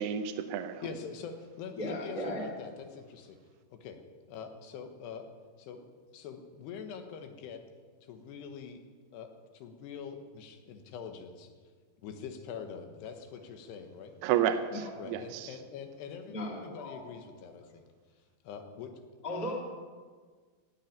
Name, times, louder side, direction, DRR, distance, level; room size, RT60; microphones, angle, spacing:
voice 1, 0.0-0.8 14.2-15.6, right 9 dB, 75° right, 8 dB, 2.7 m, -31 dB
voice 2, 0.8-3.4 3.8-4.0 4.3-5.3 5.6-5.8 6.1-7.6 8.1-8.8 9.1-11.5 12.0-14.1 15.0-16.4 16.6-17.8 18.5-18.9, left 6 dB, 75° left, 6 dB, 3.3 m, -44 dB
voice 3, 1.8-2.4 14.7-14.9 16.3-17.0 19.2-19.5, left 1 dB, 30° left, -5 dB, 2.4 m, -36 dB
17.0 x 7.5 x 9.5 m, 1.5 s
omnidirectional pair, 5.0 m